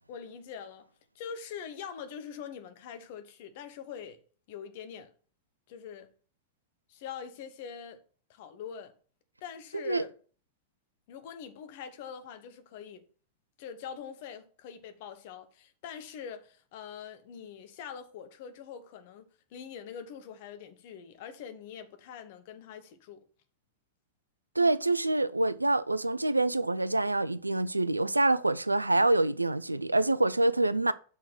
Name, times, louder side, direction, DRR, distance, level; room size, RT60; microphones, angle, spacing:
voice 1, 0.1-0.9 1.1-4.2 4.5-5.1 5.7-6.1 6.9-8.0 8.3-8.9 9.4-10.1 11.1-13.0 13.6-19.2 19.5-23.2, left 7 dB, 50° left, 0.9 m, -43 dB
voice 2, 24.6-30.9, right 2 dB, 85° right, 0.3 m, -26 dB
6.1 x 4.2 x 5.7 m
figure-of-eight pair, 90°, 0 cm